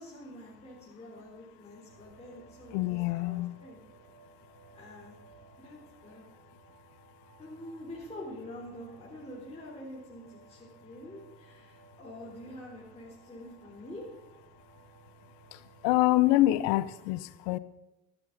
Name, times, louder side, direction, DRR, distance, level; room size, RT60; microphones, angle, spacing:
voice 1, 0.0-3.8 4.7-6.2 7.4-14.0, left 1 dB, 15° left, 3.9 m, -46 dB
sound 1, 1.9-16.3, right 6 dB, 55° right, 1.6 m, -58 dB
voice 2, 2.7-3.5 15.5-17.6, left 16 dB, 80° left, 0.7 m, -26 dB
15.0 x 11.0 x 4.1 m
supercardioid pair, 80°, 38 cm